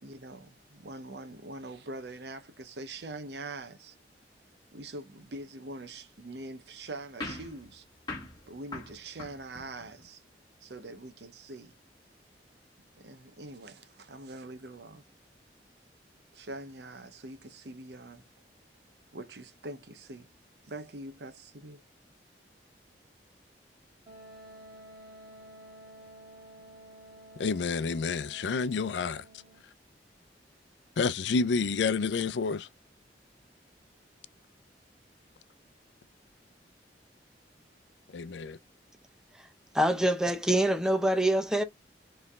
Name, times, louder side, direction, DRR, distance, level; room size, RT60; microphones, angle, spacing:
voice 1, 0.0-4.0 4.7-7.8 8.5-10.2 10.6-11.7 13.0-15.0 16.3-18.2 19.1-20.3 20.7-21.8, right 2 dB, 70° right, 0.7 m, -43 dB
sound 1, 7.2-10.1, left 2 dB, 25° left, 1.7 m, -42 dB
Wind instrument woodwind instrument, 24.1-29.6, right 1 dB, 25° right, 1.6 m, -51 dB
voice 2, 27.4-29.2 31.0-32.7 38.1-38.6, left 4 dB, 90° left, 0.5 m, -29 dB
voice 3, 39.7-41.6, right 1 dB, 5° right, 0.7 m, -25 dB
4.5 x 3.3 x 3.5 m
head